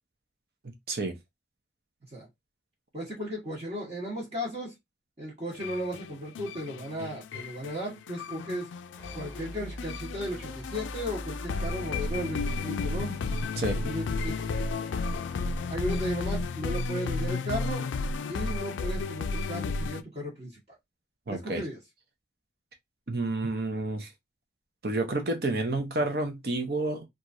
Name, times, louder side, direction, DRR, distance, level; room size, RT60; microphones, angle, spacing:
voice 1, 2.9-4.8 5.2-8.7 9.1-13.2 13.8-14.5 15.7-17.9 18.3-20.8 21.3-21.8, equal, 35° right, 1.0 m, -35 dB
sound 1, 5.5-20.0, left 4 dB, 90° left, 0.3 m, -33 dB
sound 2, 9.0-16.1, equal, 10° left, 0.8 m, -44 dB
voice 2, 21.3-21.6 23.1-24.1 24.8-27.1, right 2 dB, 55° right, 0.7 m, -29 dB
3.0 x 2.4 x 2.5 m
head